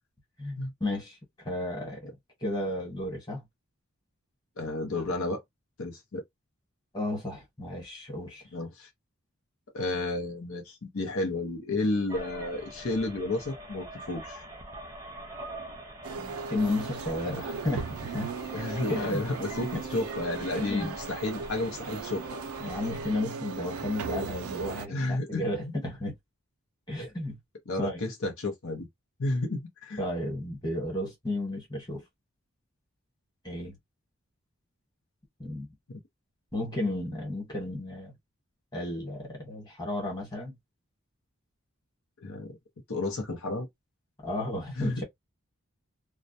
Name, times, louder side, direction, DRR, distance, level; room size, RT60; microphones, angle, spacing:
voice 1, 0.4-2.1 2.4-3.4 6.9-8.4 16.5-18.3 18.9-19.2 19.7-19.8 20.6-20.9 22.6-26.1 26.9-27.4 27.8-28.0 30.0-32.0 33.4-33.8 35.4-35.7 36.5-38.1 38.7-40.6 44.2-45.0, left 1 dB, 20° left, 1.1 m, -33 dB
voice 2, 4.6-5.4 5.8-6.2 8.5-8.9 9.7-14.4 18.5-22.5 24.9-25.7 27.7-28.9 29.2-30.0 35.9-36.0 42.2-42.6 42.9-43.7 44.8-45.0, left 2 dB, 75° left, 0.7 m, -32 dB
sound 1, 12.1-23.2, right 1 dB, 15° right, 0.6 m, -44 dB
sound 2, 16.0-24.9, right 4 dB, 85° right, 0.4 m, -37 dB
2.2 x 2.1 x 2.5 m
head